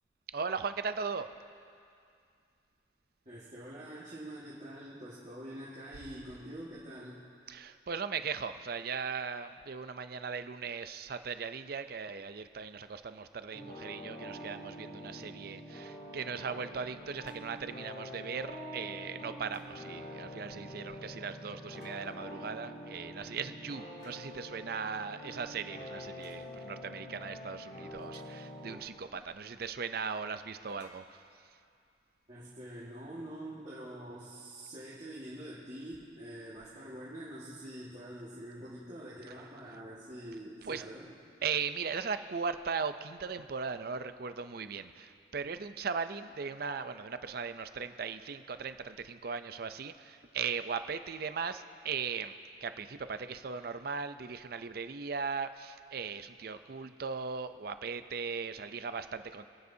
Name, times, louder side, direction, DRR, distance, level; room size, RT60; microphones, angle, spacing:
voice 1, 0.3-1.3 7.5-31.2 40.6-40.8 41.4-52.3 52.6-59.4, right 5 dB, 55° right, 10 dB, 0.5 m, -38 dB
voice 2, 3.3-7.2 32.3-41.1, right 1 dB, 40° right, -10 dB, 1.8 m, -45 dB
sound 1, 13.5-28.8, left 1 dB, 40° left, 2.5 m, -46 dB
sound 2, 17.2-17.5 19.4-20.1 21.7-22.3 24.0-24.3 26.2-26.5 28.0-28.7 30.6-31.8, left 2 dB, 65° left, 2.0 m, -62 dB
27.0 x 9.5 x 2.7 m, 2.4 s
head